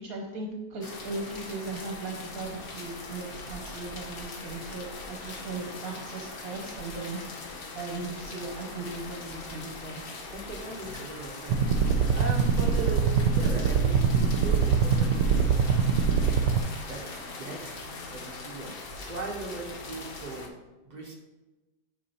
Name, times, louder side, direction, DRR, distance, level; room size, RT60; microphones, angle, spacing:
voice 1, 0.0-10.1, right 3 dB, 60° right, 0 dB, 1.3 m, -38 dB
sound 1, 0.8-20.5, left 3 dB, 50° left, 0.7 m, -41 dB
voice 2, 10.3-16.5 16.9-17.7 18.1-18.7 19.0-20.5 20.9-21.1, right 2 dB, 30° right, -1 dB, 0.9 m, -39 dB
sound 2, 11.5-16.6, right 6 dB, 80° right, 1.2 m, -23 dB
8.3 x 5.4 x 2.8 m, 1.1 s
omnidirectional pair, 1.8 m